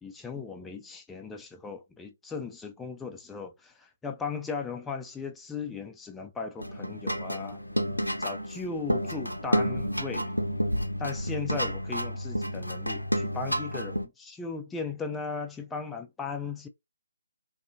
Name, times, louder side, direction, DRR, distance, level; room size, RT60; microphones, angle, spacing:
voice 1, 0.0-7.6 8.2-10.3 11.0-16.7, left 5 dB, 5° left, 0.3 m, -37 dB
sound 1, 6.6-14.1, equal, 85° left, 0.5 m, -30 dB
2.6 x 2.4 x 2.4 m
figure-of-eight pair, 145°, 0 cm